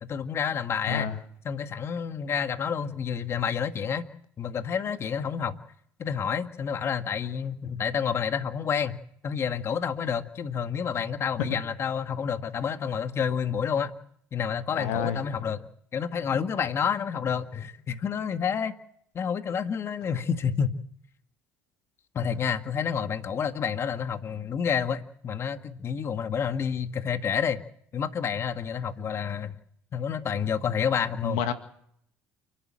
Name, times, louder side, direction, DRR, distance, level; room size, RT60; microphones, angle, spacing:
voice 1, 0.0-1.1 1.4-4.1 4.4-5.6 6.0-13.9 14.3-18.7 19.1-20.8 22.1-27.6 27.9-29.6 29.9-31.4, left 7 dB, 45° left, 8 dB, 1.8 m, -29 dB
voice 2, 0.9-1.2 14.8-15.2 31.2-31.5, left 7 dB, 80° left, 9 dB, 2.0 m, -28 dB
29.0 x 12.0 x 7.6 m, 0.67 s
supercardioid pair, 75°, 6 cm